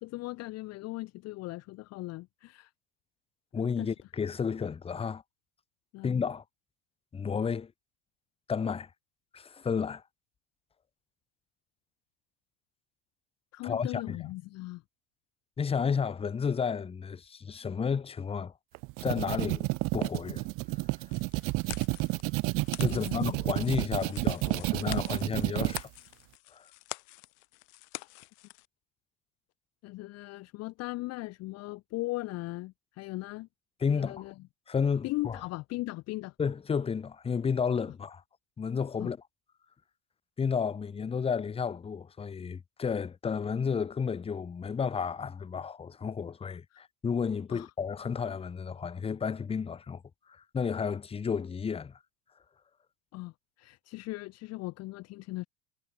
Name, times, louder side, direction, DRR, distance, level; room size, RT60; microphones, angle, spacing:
voice 1, 0.0-2.7 3.8-3.9 5.9-6.1 13.5-14.8 22.8-23.4 29.8-33.5 33.9-34.3 35.0-36.3 39.0-39.1 46.7-46.8 47.5-47.7 53.1-55.5, left 20 dB, 35° left, 0.8 m, -38 dB
voice 2, 3.5-5.2 6.0-6.4 7.1-7.7 8.5-8.9 9.3-10.0 13.6-14.2 15.6-18.5 19.0-19.7 19.9-20.5 22.8-25.9 26.5-26.6 33.8-34.3 34.7-35.4 36.4-38.2 38.6-39.2 40.4-50.0 50.5-51.9, left 6 dB, 10° left, 1.3 m, -32 dB
sound 1, 18.7-25.8, right 25 dB, 30° right, 0.4 m, -30 dB
sound 2, 21.1-28.7, left 38 dB, 60° left, 1.9 m, -46 dB
cardioid pair, 175°, 45 cm